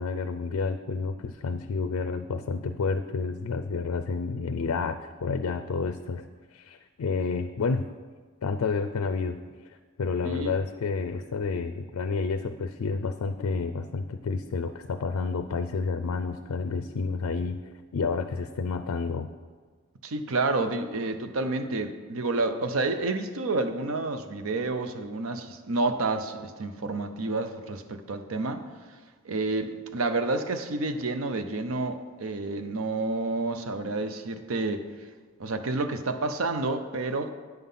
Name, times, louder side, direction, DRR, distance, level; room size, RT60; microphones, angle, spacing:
voice 1, 0.0-6.2 6.5-7.9 8.4-9.4 9.7-17.6 17.9-19.3, left 4 dB, 90° left, 9 dB, 0.4 m, -30 dB
voice 2, 20.0-28.6 29.2-34.9 35.4-37.3, right 2 dB, 75° right, 8 dB, 0.7 m, -29 dB
9.2 x 5.7 x 5.5 m, 1.5 s
head